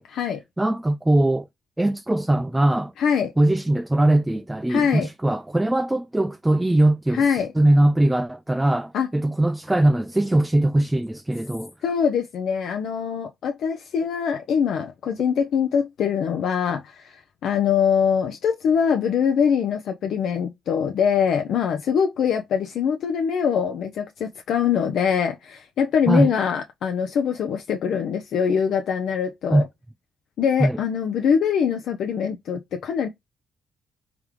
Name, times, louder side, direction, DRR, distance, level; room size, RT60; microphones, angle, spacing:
voice 1, 0.0-0.4 3.0-3.3 4.7-5.1 7.1-7.5 8.9-9.1 11.8-29.6 30.4-33.1, left 7 dB, 70° left, 0.5 m, -23 dB
voice 2, 0.6-1.5 1.8-2.9 3.4-11.7 26.1-26.3 29.5-29.6 30.6-30.8, right 1 dB, 10° right, 0.3 m, -21 dB
3.6 x 3.6 x 3.0 m
cardioid pair, 90°, 0 cm